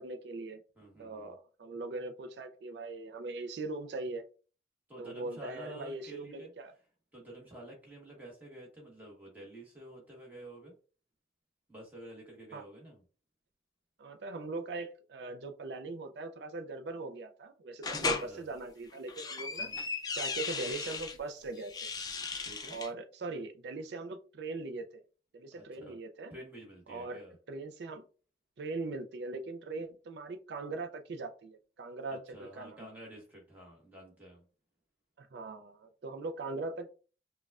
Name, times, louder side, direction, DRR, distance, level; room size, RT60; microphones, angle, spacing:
voice 1, 0.0-0.6 1.0-4.3 5.0-6.7 12.5-12.6 14.0-19.7 20.2-21.9 22.7-25.0 25.3-26.3 26.9-27.2 27.5-28.0 28.6-32.8 35.2-36.9, right 3 dB, 80° right, 0.4 m, -40 dB
voice 2, 0.8-1.4 4.9-6.5 7.1-10.7 11.7-13.0 18.1-18.4 19.6-19.9 22.4-22.8 25.5-26.0 26.3-27.4 32.3-34.4, right 1 dB, 10° right, 1.2 m, -50 dB
sound 1, 17.8-18.3 18.9-21.1 21.6-22.9, left 4 dB, 20° left, 0.4 m, -36 dB
5.1 x 2.2 x 2.4 m
head